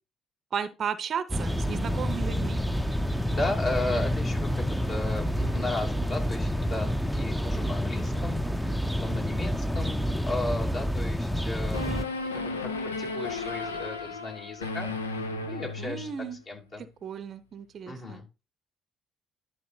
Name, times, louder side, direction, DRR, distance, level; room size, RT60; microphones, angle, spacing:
voice 1, 0.5-2.6 15.8-16.4 17.0-18.2, right 7 dB, 45° right, 0.7 m, -34 dB
sound 1, 1.3-12.0, equal, ahead, 0.7 m, -28 dB
voice 2, 3.3-11.9 12.2-14.9 15.5-16.1 16.5-16.9 17.9-18.3, left 2 dB, 40° left, 2.5 m, -35 dB
sound 2, 11.7-16.4, left 3 dB, 80° left, 0.6 m, -34 dB
11.0 x 5.9 x 2.7 m
figure-of-eight pair, 50°, 0 cm